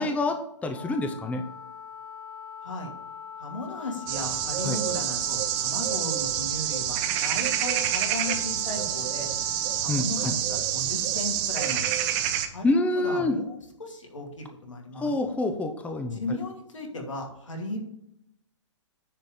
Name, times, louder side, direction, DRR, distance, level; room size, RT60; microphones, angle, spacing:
voice 1, 0.0-1.4 4.6-4.8 9.9-10.3 12.6-13.4 15.0-16.2, left 2 dB, 10° left, 6 dB, 0.7 m, -27 dB
Wind instrument woodwind instrument, 0.7-9.9, left 7 dB, 70° left, 3.7 m, -44 dB
voice 2, 2.6-2.9 3.4-9.3 9.8-11.9 12.5-15.1 16.1-17.8, left 2 dB, 85° left, 1 dB, 2.5 m, -36 dB
sound 1, 4.1-12.5, right 10 dB, 35° right, 1.1 m, -27 dB
10.0 x 4.1 x 6.9 m, 0.78 s
hypercardioid pair, 125°, 16 cm